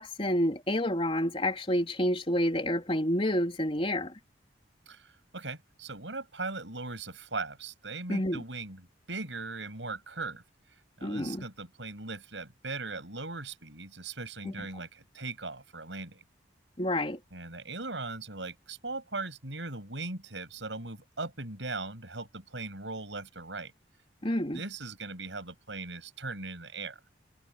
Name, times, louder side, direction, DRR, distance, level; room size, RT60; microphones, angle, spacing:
voice 1, 0.0-4.1 8.1-8.4 11.0-11.4 16.8-17.2 24.2-24.6, left 1 dB, 30° left, 3.6 m, -29 dB
voice 2, 4.9-10.4 11.0-16.2 17.3-23.7 24.2-27.0, right 3 dB, 80° right, 7.6 m, -39 dB
head